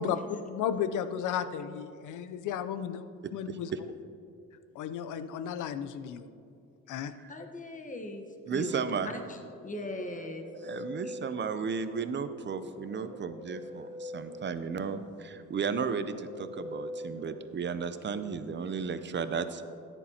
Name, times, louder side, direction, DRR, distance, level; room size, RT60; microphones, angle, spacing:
voice 1, 0.5-3.7 4.7-6.3 6.9-7.1, left 8 dB, 80° left, 12 dB, 0.6 m, -34 dB
voice 2, 3.5-3.8 7.2-7.3 8.5-9.1 10.5-19.6, right 6 dB, 40° right, 11 dB, 0.6 m, -34 dB
voice 3, 7.3-8.2 8.5-9.4 9.6-10.5 11.0-11.1, left 1 dB, 25° left, 4 dB, 1.1 m, -39 dB
sound 1, 9.4-18.1, equal, 45° left, 2.8 m, -44 dB
13.5 x 10.0 x 2.9 m, 2.5 s
cardioid pair, 90°, 30 cm